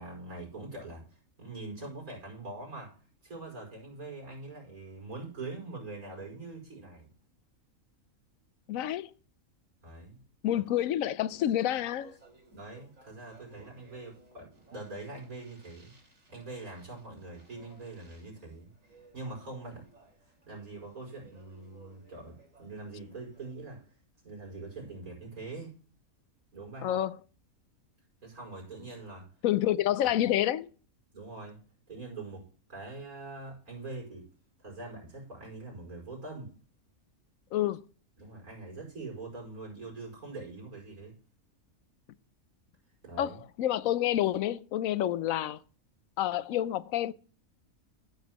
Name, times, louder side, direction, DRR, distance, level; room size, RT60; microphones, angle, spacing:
voice 1, 0.0-2.9 3.2-7.1 9.8-10.2 10.5-10.9 12.5-15.9 16.3-18.7 19.1-19.9 20.5-23.9 24.2-25.7 26.5-27.0 28.2-29.3 30.2-30.3 31.1-31.6 31.9-34.3 34.6-36.5 38.2-41.2 43.0-43.4, right 3 dB, 85° right, 5.6 m, -43 dB
voice 2, 8.7-9.1 10.4-12.1 26.8-27.2 29.4-30.7 37.5-37.8 43.2-45.6 46.2-47.1, left 12 dB, 75° left, 1.0 m, -28 dB
Speech, 11.5-23.8, right 2 dB, 65° right, 3.6 m, -60 dB
15.0 x 7.1 x 3.0 m
omnidirectional pair, 1.5 m